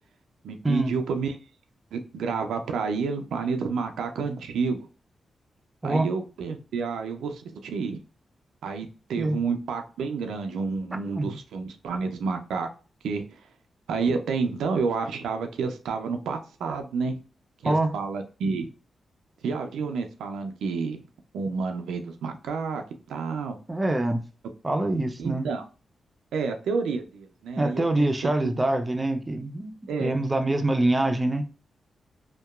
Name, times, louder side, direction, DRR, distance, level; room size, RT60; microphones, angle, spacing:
voice 1, 0.4-1.4 1.9-4.9 5.8-8.0 8.6-12.7 13.0-13.4 13.9-17.2 17.6-18.7 19.4-21.0 21.3-23.6 25.2-25.6 26.3-28.5 29.9-30.1, right 5 dB, 90° right, 0.3 m, -30 dB
voice 2, 5.8-6.1 9.2-9.4 11.1-11.4 17.6-18.0 23.7-24.3 24.6-25.4 27.6-29.7 30.0-31.5, right 2 dB, 25° right, 0.5 m, -25 dB
2.8 x 2.2 x 2.2 m
cardioid pair, 55°, 0 cm